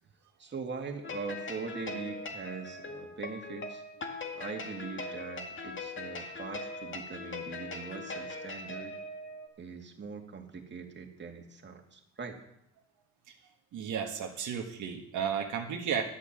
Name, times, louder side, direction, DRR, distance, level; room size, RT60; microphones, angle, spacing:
voice 1, 0.4-3.8 4.3-9.0 9.6-12.4, right 5 dB, 35° right, 3 dB, 2.3 m, -42 dB
sound 1, 1.0-9.5, left 2 dB, 40° left, 2.0 m, -40 dB
voice 2, 13.7-16.0, right 7 dB, 80° right, 2 dB, 1.6 m, -33 dB
12.0 x 8.6 x 7.5 m, 0.77 s
cardioid pair, 90°, 30 cm